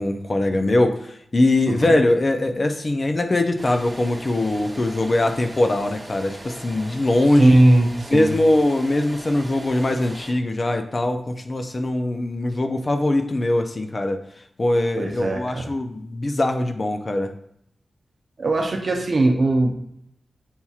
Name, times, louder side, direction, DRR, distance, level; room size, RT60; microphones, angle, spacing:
voice 1, 0.0-7.6 8.1-14.2 14.6-17.3, left 1 dB, 35° left, 6 dB, 0.4 m, -21 dB
sound 1, 3.6-10.3, right 1 dB, 15° right, 0.8 m, -40 dB
voice 2, 7.4-8.3 15.0-15.7 18.4-19.7, right 1 dB, 50° right, 3 dB, 0.6 m, -19 dB
7.0 x 2.7 x 2.4 m, 0.73 s
wide cardioid pair, 125°, 0 cm